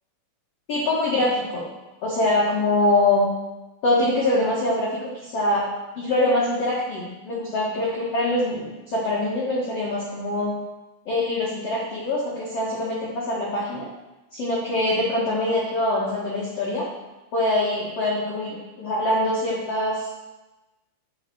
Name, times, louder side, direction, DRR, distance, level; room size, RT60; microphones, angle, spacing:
voice 1, 0.7-1.6 2.0-3.3 3.8-4.9 5.3-5.7 6.0-10.5 11.0-13.8 14.3-16.8 17.3-20.1, left 1 dB, 85° left, -5 dB, 1.3 m, -24 dB
9.9 x 5.6 x 6.4 m, 1.1 s
omnidirectional pair, 5.5 m